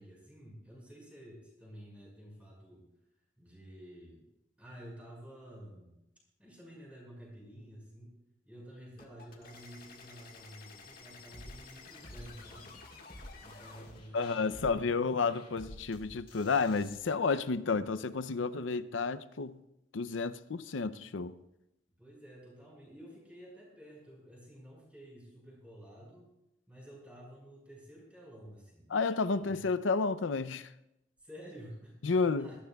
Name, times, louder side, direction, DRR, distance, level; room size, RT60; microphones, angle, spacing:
voice 1, 0.0-2.8 3.4-4.3 4.6-5.9 6.4-8.1 8.4-12.8 13.4-15.1 22.0-26.3 26.7-28.9 29.4-29.6 31.2-32.6, equal, 5° right, 5.2 m, -51 dB
sound 1, 9.0-14.0, left 4 dB, 50° left, 1.7 m, -53 dB
sound 2, 11.3-17.0, equal, 30° left, 3.2 m, -52 dB
voice 2, 14.1-19.6 19.9-21.4 28.9-30.7 32.0-32.5, left 4 dB, 85° left, 0.6 m, -31 dB
22.0 x 14.0 x 2.4 m
head